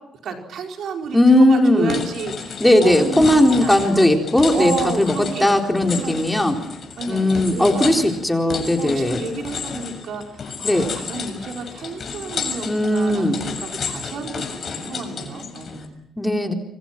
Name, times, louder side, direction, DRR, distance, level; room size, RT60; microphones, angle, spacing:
voice 1, 0.2-4.1 4.5-5.6 5.9-6.5 7.0-7.9 8.8-16.0, right 4 dB, 70° right, 3 dB, 5.0 m, -31 dB
voice 2, 1.1-2.0 2.6-5.1 5.4-6.6 7.1-9.2 10.6-10.9 12.6-13.4 16.2-16.5, left 1 dB, 10° left, 3 dB, 4.1 m, -17 dB
sound 1, 1.5-1.6 1.9-15.9, left 5 dB, 50° left, 6.6 m, -32 dB
26.5 x 25.5 x 6.1 m, 0.83 s
cardioid pair, 90°, 0 cm